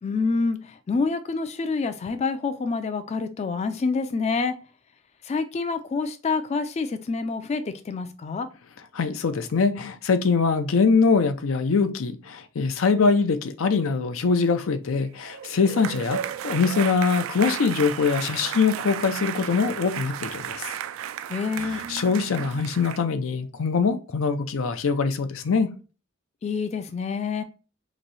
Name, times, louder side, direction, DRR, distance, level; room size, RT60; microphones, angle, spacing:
voice 1, 0.0-4.5 5.2-8.5 21.3-21.8 26.4-27.4, left 4 dB, 35° left, 0.3 m, -27 dB
voice 2, 8.9-16.2 16.4-20.7 21.7-25.7, left 5 dB, 85° left, 0.5 m, -23 dB
sound 1, 15.1-23.0, right 9 dB, 85° right, 0.3 m, -34 dB
3.0 x 2.6 x 4.0 m
head